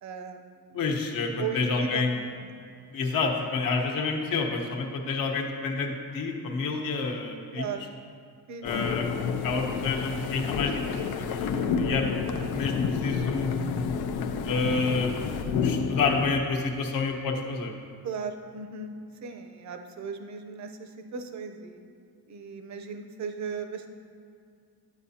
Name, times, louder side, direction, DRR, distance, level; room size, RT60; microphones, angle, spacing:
voice 1, 0.0-0.8 1.4-2.0 2.4-2.5 7.5-7.8 8.5-9.2 18.0-21.8 22.3-23.9, right 5 dB, 45° right, 7 dB, 0.7 m, -37 dB
voice 2, 0.7-2.2 2.9-7.7 8.6-9.1 9.4-12.1 12.5-13.6 14.4-15.1 15.6-17.7, left 4 dB, 60° left, 2 dB, 1.1 m, -29 dB
sound 1, 8.6-16.4, left 6 dB, 80° left, 0.6 m, -29 dB
10.0 x 8.2 x 2.8 m, 2.3 s
cardioid pair, 140°, 38 cm